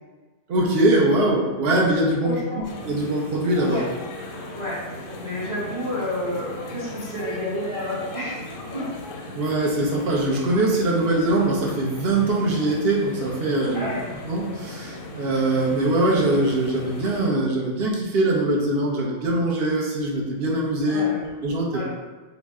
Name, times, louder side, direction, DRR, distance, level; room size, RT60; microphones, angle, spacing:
voice 1, 0.5-3.8 9.3-13.9 14.2-21.0 21.4-21.8, right 1 dB, 60° right, -2 dB, 0.8 m, -22 dB
voice 2, 2.2-2.6 3.6-3.9 4.5-4.9 5.2-8.4 8.7-8.9 13.7-14.1 20.9-21.2 21.7-21.8, left 1 dB, 25° right, -9 dB, 0.9 m, -30 dB
sound 1, 2.6-17.3, left 1 dB, 60° left, 0.6 m, -37 dB
3.9 x 2.1 x 3.5 m, 1.3 s
omnidirectional pair, 1.2 m